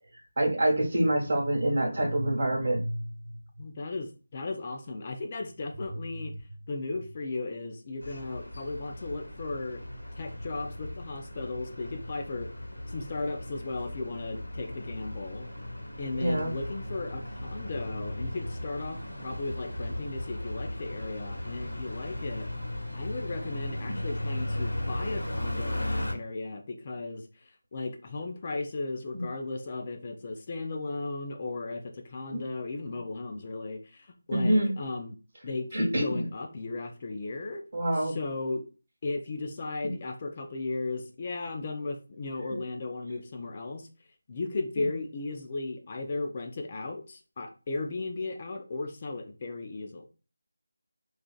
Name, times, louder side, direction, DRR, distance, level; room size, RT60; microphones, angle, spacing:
voice 1, 0.4-3.1 16.1-16.5 23.9-24.0 29.1-29.2 32.3-32.4 34.3-34.7 35.7-36.3 37.7-38.2 44.8-44.9, right 1 dB, 40° right, -4 dB, 1.3 m, -26 dB
voice 2, 3.6-6.3 6.7-9.8 10.2-12.5 12.9-15.5 16.0-22.5 22.9-35.2 35.4-37.6 37.9-38.6 39.0-43.9 44.3-50.1, left 3 dB, 30° left, 3 dB, 0.4 m, -36 dB
sound 1, 8.0-26.1, left 1 dB, 90° left, 1.0 m, -36 dB
3.7 x 2.4 x 2.3 m, 0.34 s
figure-of-eight pair, 165°, 0 cm